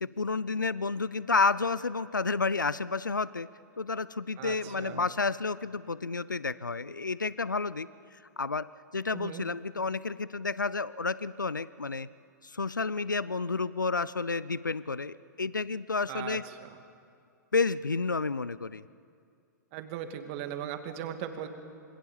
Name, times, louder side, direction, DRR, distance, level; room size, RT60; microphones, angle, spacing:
voice 1, 0.0-3.5 3.8-7.9 8.4-8.7 8.9-12.1 12.4-16.4 17.5-18.8, left 4 dB, 85° left, 19 dB, 0.5 m, -30 dB
voice 2, 4.4-5.1 9.1-9.4 16.1-16.7 19.7-21.5, right 10 dB, 40° right, 7 dB, 2.4 m, -38 dB
27.0 x 25.0 x 7.2 m, 2.3 s
figure-of-eight pair, 105°, 10 cm